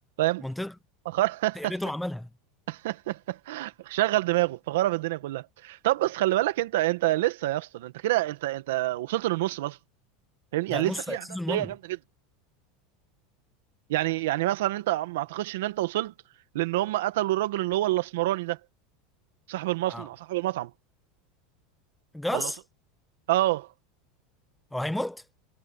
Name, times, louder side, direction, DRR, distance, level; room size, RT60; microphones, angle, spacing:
voice 1, 0.4-0.7 1.6-2.3 10.7-11.7 19.9-20.1 22.1-22.6 24.7-25.2, left 1 dB, 5° left, 0.6 m, -32 dB
voice 2, 1.1-1.7 2.7-9.8 10.5-11.8 13.9-16.1 16.5-18.6 19.5-20.7 22.3-22.5 23.3-23.7, right 16 dB, 80° right, 1.7 m, -27 dB
supercardioid pair, 155°, 0 cm